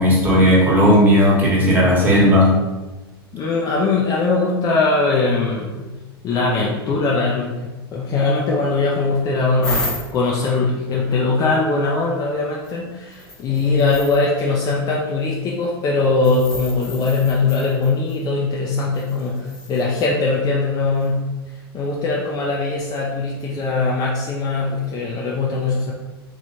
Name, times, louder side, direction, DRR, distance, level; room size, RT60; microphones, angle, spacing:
voice 1, 0.0-2.6, equal, 15° right, -6 dB, 1.3 m, -14 dB
voice 2, 3.3-5.9 6.2-9.9 10.1-21.3 21.7-25.9, left 3 dB, 30° left, -3 dB, 0.5 m, -21 dB
sound 1, 9.6-10.3 12.6-12.7 13.1-14.2 16.2-18.2 18.9-20.0 21.0-21.1, left 1 dB, 5° left, 1.0 m, -31 dB
3.1 x 3.0 x 2.6 m, 1.2 s
figure-of-eight pair, 85°, 13 cm